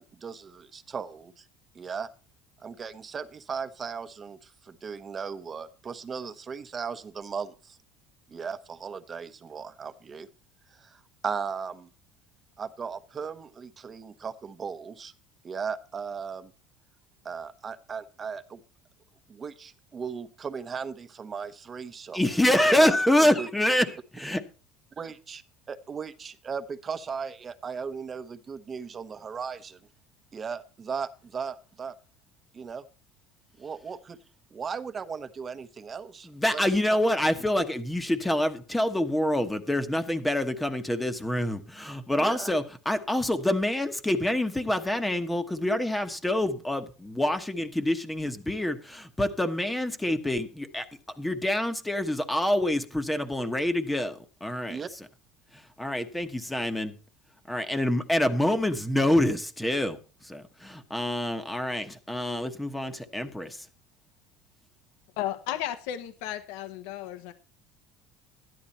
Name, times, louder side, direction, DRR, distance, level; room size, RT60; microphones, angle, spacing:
voice 1, 0.0-1.4 1.7-2.1 2.6-7.8 8.3-10.3 10.7-11.9 12.6-15.1 15.4-16.5 17.2-18.6 19.3-22.2 22.6-23.0 23.3-23.5 25.0-25.4 25.7-29.8 30.3-31.9 32.5-32.8 33.6-34.2 34.5-36.6 42.2-42.5 54.7-54.9, right 6 dB, 25° right, 1.1 m, -37 dB
voice 2, 22.1-24.4 36.2-50.9 51.2-54.8 55.5-56.9 57.5-63.7, left 1 dB, 5° left, 1.2 m, -26 dB
voice 3, 65.2-67.3, left 12 dB, 80° left, 1.2 m, -34 dB
13.0 x 10.5 x 4.3 m
supercardioid pair, 125°, 0 cm